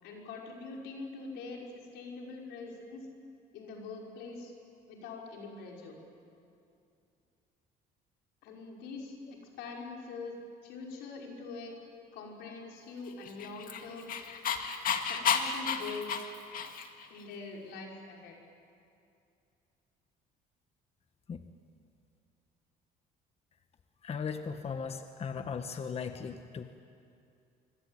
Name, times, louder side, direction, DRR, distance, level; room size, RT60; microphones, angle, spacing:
voice 1, 0.0-3.1 3.5-4.5 4.9-6.0 8.4-10.4 10.6-11.7 12.1-14.1 15.0-16.2 17.1-18.4, left 4 dB, 90° left, 0 dB, 5.6 m, -43 dB
Dog, 13.2-17.0, left 6 dB, 55° left, 2.2 m, -32 dB
voice 2, 24.0-26.8, left 6 dB, 35° left, 7 dB, 1.3 m, -37 dB
25.5 x 25.0 x 9.1 m, 2.5 s
cardioid pair, 110°, 17 cm